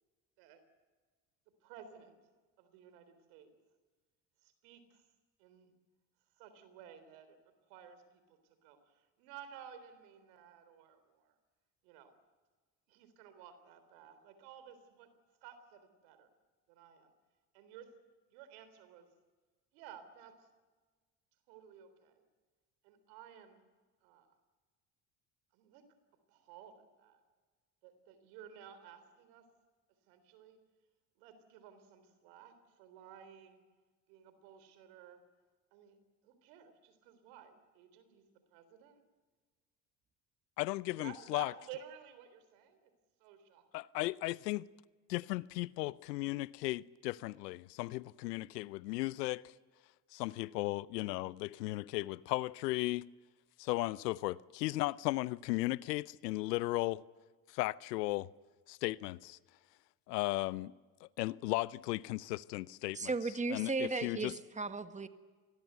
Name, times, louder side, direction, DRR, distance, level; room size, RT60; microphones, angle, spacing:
voice 1, 1.6-2.1 2.6-3.5 4.4-5.0 5.4-5.7 6.4-7.4 7.7-11.3 11.8-12.1 12.9-15.1 15.4-16.3 16.7-17.1 17.5-17.9 18.3-19.1 19.7-20.5 21.5-22.2 22.8-23.6 24.0-24.3 25.5-25.9 26.3-27.2 27.8-29.4 30.1-30.6 31.2-33.6 34.1-35.2 35.7-36.0 36.2-38.2 38.5-39.0 41.0-42.9 43.2-43.7, right 9 dB, 75° right, 3.8 m, -54 dB
voice 2, 40.6-41.5 43.7-44.7 45.1-49.5 50.1-53.0 53.6-57.0 57.5-58.3 58.7-59.4 60.1-60.7 61.0-63.1 63.5-64.4, left 19 dB, 85° left, 0.7 m, -36 dB
voice 3, 62.9-65.1, right 3 dB, 15° right, 1.6 m, -36 dB
27.0 x 20.5 x 8.1 m
hypercardioid pair, 65°, 47 cm